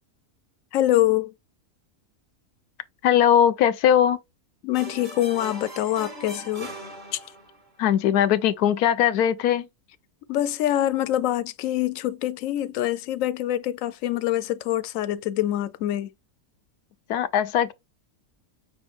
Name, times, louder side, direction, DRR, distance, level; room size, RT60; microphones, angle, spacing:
voice 1, 0.7-1.3 4.6-6.7 7.1-7.2 10.3-16.1, left 13 dB, 70° left, 0.9 m, -25 dB
voice 2, 3.0-4.2 7.8-9.7 17.1-17.7, left 10 dB, 85° left, 1.1 m, -20 dB
sound 1, 4.7-7.7, right 2 dB, 35° right, 1.5 m, -40 dB
6.0 x 2.6 x 3.3 m
omnidirectional pair, 1.6 m